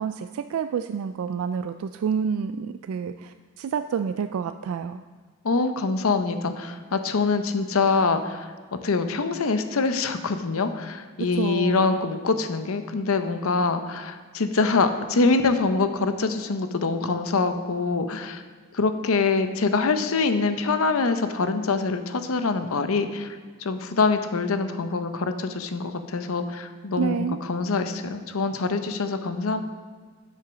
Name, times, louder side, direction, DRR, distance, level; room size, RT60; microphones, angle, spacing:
voice 1, 0.0-5.0 11.3-12.0 27.0-27.4, right 6 dB, 75° right, 9 dB, 0.3 m, -28 dB
voice 2, 5.4-18.4 18.7-29.6, left 4 dB, 75° left, 9 dB, 0.7 m, -24 dB
7.7 x 6.6 x 6.1 m, 1.5 s
head